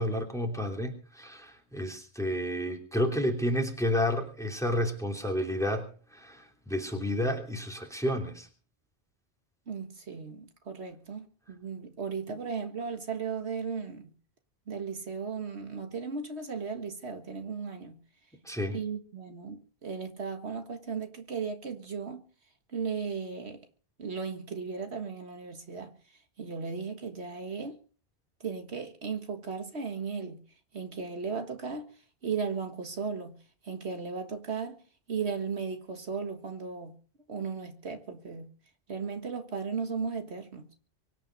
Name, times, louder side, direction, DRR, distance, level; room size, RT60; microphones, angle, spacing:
voice 1, 0.0-5.9 6.1-8.5 18.4-18.8, left 1 dB, 5° left, 3.1 m, -30 dB
voice 2, 9.7-14.1 14.7-18.0 18.7-22.2 22.7-23.6 24.0-25.9 26.4-27.8 28.4-30.4 30.7-31.9 32.2-33.4 33.6-34.8 35.1-36.9 37.3-38.5 38.9-40.7, right 5 dB, 70° right, 1.9 m, -36 dB
24.0 x 9.3 x 5.3 m
omnidirectional pair, 1.1 m